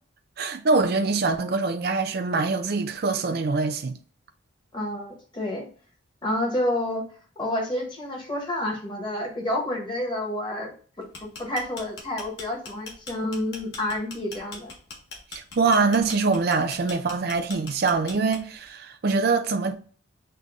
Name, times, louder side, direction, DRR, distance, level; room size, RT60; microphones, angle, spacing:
voice 1, 0.4-4.0 15.6-19.8, right 4 dB, 50° right, 0.4 m, -24 dB
voice 2, 4.7-5.7 6.2-7.0 7.4-14.7, left 1 dB, 20° left, 1.1 m, -29 dB
sound 1, 11.0-18.7, left 3 dB, 55° left, 1.0 m, -41 dB
6.6 x 2.2 x 3.5 m
head